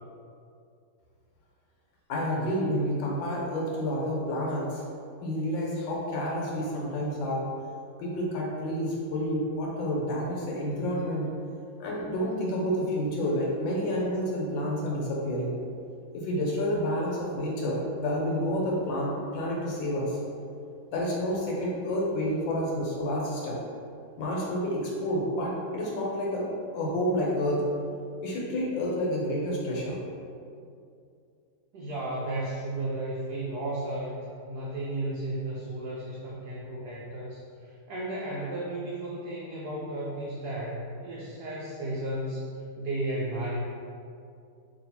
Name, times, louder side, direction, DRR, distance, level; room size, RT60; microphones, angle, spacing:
voice 1, 2.1-4.8 5.2-7.5 8.0-11.3 11.8-15.6 16.1-20.2 20.9-23.6 24.2-27.6 28.2-30.0, equal, 70° left, -3 dB, 1.4 m, -29 dB
voice 2, 31.7-42.5 42.8-43.6, right 1 dB, 85° right, -5 dB, 0.8 m, -34 dB
3.2 x 2.8 x 4.1 m, 2.4 s
omnidirectional pair, 2.3 m